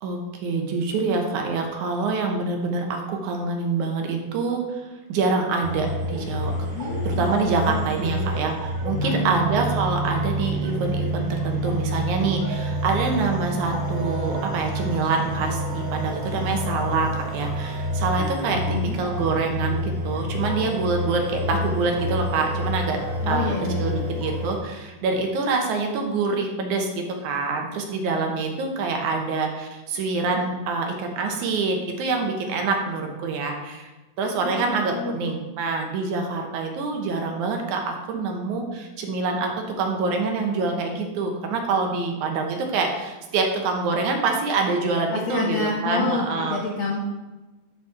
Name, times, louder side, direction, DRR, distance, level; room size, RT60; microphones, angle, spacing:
voice 1, 0.0-6.5 7.0-23.0 23.2-33.9 34.2-46.6, right 4 dB, 75° right, 3 dB, 2.3 m, -26 dB
sound 1, 5.6-24.6, left 1 dB, 30° right, 0.3 m, -29 dB
voice 2, 6.7-7.3 7.7-8.2 9.0-9.4 18.5-19.0 23.2-23.9 34.4-35.3 45.1-47.0, left 4 dB, 75° left, -2 dB, 1.1 m, -29 dB
sound 2, 8.9-21.2, right 8 dB, 5° left, 0.9 m, -32 dB
11.5 x 4.1 x 4.3 m, 1.1 s
omnidirectional pair, 3.7 m